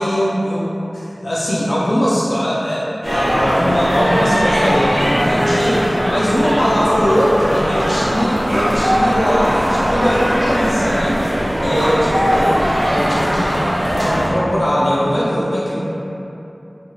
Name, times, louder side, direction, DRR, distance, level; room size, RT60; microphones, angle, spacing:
voice 1, 0.0-11.2 11.6-13.6 14.0-15.8, equal, 70° left, -8 dB, 0.4 m, -20 dB
sound 1, 3.0-14.3, equal, 60° right, 0.5 m, -19 dB
2.7 x 2.3 x 2.9 m, 2.9 s
wide cardioid pair, 55°, 0 cm